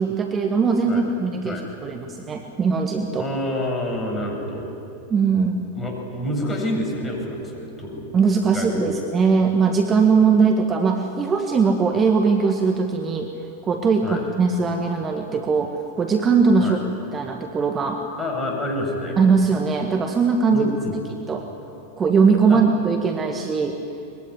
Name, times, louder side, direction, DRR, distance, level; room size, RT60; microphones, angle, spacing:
voice 1, 0.0-3.3 5.1-5.6 8.1-13.3 13.6-16.8 17.1-18.0 19.2-20.7 21.3-21.4 22.0-23.8, right 5 dB, 20° right, 4 dB, 1.8 m, -20 dB
voice 2, 3.2-4.7 5.7-8.1 8.5-8.9 14.0-14.2 16.6-16.8 18.2-19.2 20.5-21.0 22.5-22.6, left 1 dB, 20° left, 1 dB, 7.6 m, -28 dB
23.5 x 22.0 x 9.8 m, 2.8 s
figure-of-eight pair, 90°, 0 cm